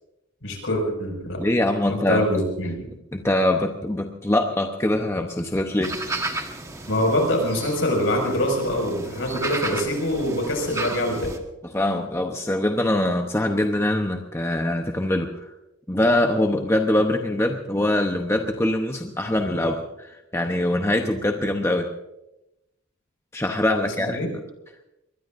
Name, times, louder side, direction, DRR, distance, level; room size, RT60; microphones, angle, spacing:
voice 1, 0.4-1.4 1.9-2.9 6.9-11.3 23.8-24.3, left 1 dB, 65° left, 2 dB, 5.8 m, -24 dB
voice 2, 1.4-2.2 3.1-6.0 11.7-15.5 15.9-21.9 23.3-24.3, left 1 dB, 10° left, 4 dB, 0.8 m, -23 dB
sound 1, 5.8-11.4, right 2 dB, 15° right, 1.3 m, -33 dB
22.5 x 21.0 x 2.6 m, 0.89 s
head